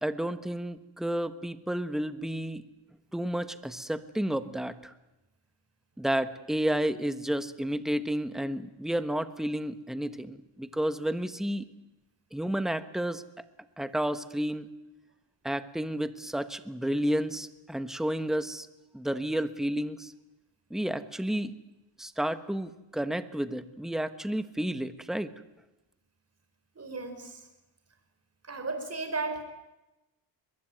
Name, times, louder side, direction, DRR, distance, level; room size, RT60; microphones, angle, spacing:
voice 1, 0.0-2.6 3.1-4.9 6.0-11.6 12.3-13.2 13.8-14.7 15.4-18.7 18.9-20.1 20.7-21.5 22.0-25.3, right 1 dB, ahead, 11 dB, 1.2 m, -31 dB
voice 2, 26.8-27.4 28.5-29.4, right 3 dB, 30° right, 7 dB, 5.2 m, -34 dB
23.0 x 21.0 x 9.3 m, 0.98 s
cardioid pair, 110°, 47 cm